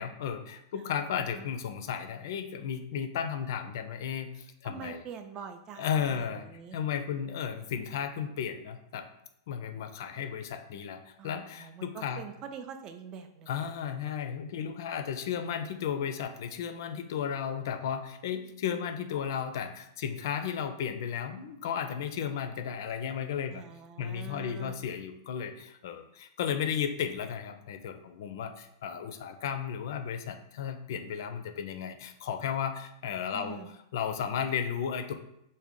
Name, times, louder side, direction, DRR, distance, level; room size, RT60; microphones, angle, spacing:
voice 1, 0.0-5.0 5.8-6.4 6.7-9.0 9.5-12.2 13.5-23.6 24.0-33.6 33.9-35.1, left 8 dB, 65° left, 8 dB, 0.4 m, -34 dB
voice 2, 0.7-1.5 4.6-6.8 11.2-13.5 23.5-24.8 33.3-33.7, right 7 dB, 35° right, 6 dB, 0.4 m, -45 dB
3.4 x 2.1 x 3.7 m, 0.81 s
hypercardioid pair, 110°, 2 cm